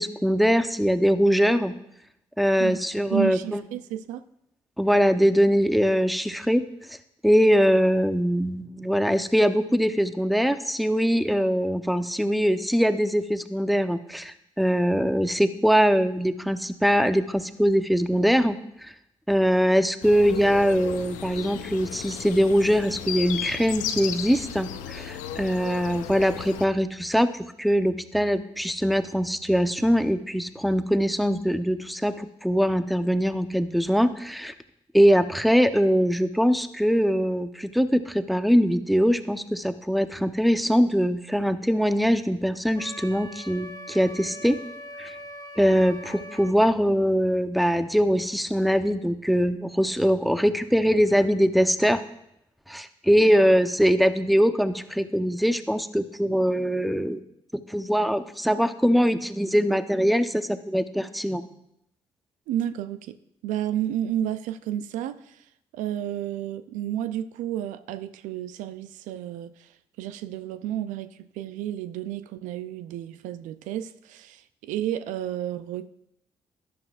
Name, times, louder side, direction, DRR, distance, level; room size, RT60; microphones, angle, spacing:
voice 1, 0.0-1.7 2.4-3.6 4.8-6.6 6.9-7.0 7.2-18.9 19.3-34.5 34.9-44.6 45.0-45.1 45.6-52.0 52.7-57.2 57.7-61.4, equal, ahead, 0.8 m, -22 dB
voice 2, 3.1-4.2 62.5-63.2 63.4-75.9, right 11 dB, 80° right, 0.4 m, -31 dB
sound 1, 20.0-26.7, left 10 dB, 80° left, 0.6 m, -35 dB
Wind instrument woodwind instrument, 42.8-46.6, equal, 25° left, 1.5 m, -41 dB
12.5 x 11.0 x 2.5 m
hypercardioid pair, 45°, 13 cm